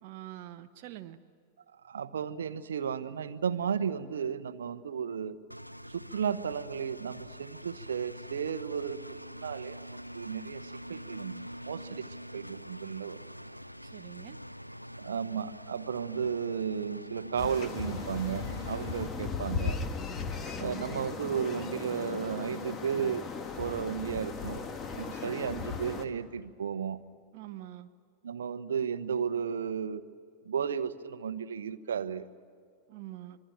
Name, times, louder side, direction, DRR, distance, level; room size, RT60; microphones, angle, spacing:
voice 1, 0.0-1.2 13.8-14.4 27.3-27.9 32.9-33.4, right 14 dB, 45° right, 7 dB, 0.7 m, -45 dB
voice 2, 1.8-5.4 5.9-12.0 12.3-13.2 15.0-19.8 20.6-23.3 23.6-24.6 24.9-27.0 28.2-30.0 30.4-32.2, right 7 dB, 65° right, 13 dB, 1.0 m, -34 dB
Engine, 5.5-19.1, equal, 90° left, 0.6 m, -45 dB
sound 1, 17.4-26.1, left 5 dB, 25° left, 1.9 m, -37 dB
26.0 x 23.0 x 9.1 m, 2.2 s
figure-of-eight pair, 90°, 0 cm